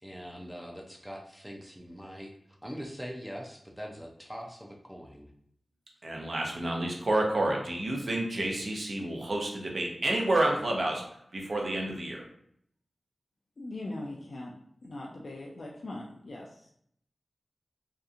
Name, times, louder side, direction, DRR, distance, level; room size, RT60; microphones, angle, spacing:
voice 1, 0.0-2.3 2.6-5.3, equal, 5° right, 0 dB, 0.4 m, -42 dB
voice 2, 6.0-11.0 11.3-12.2, right 1 dB, 60° right, 0 dB, 0.6 m, -29 dB
voice 3, 13.6-14.5 14.8-16.7, left 2 dB, 65° left, -2 dB, 0.3 m, -40 dB
2.7 x 2.4 x 2.4 m, 0.69 s
wide cardioid pair, 80°, 0 cm